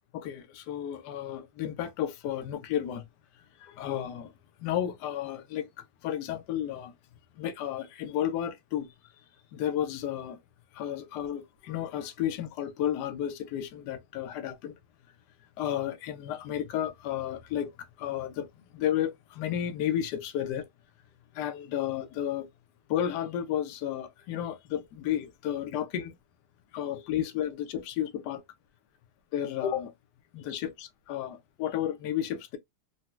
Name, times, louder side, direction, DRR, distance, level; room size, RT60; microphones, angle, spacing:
voice 1, 0.1-3.0 3.6-4.3 4.6-6.9 7.4-8.9 9.5-10.4 10.7-14.7 15.6-17.7 18.0-20.6 21.3-22.5 22.9-26.2 26.7-28.4 29.3-29.9 30.3-32.6, left 10 dB, 80° left, 1.1 m, -32 dB
3.9 x 2.1 x 2.2 m
omnidirectional pair, 1.8 m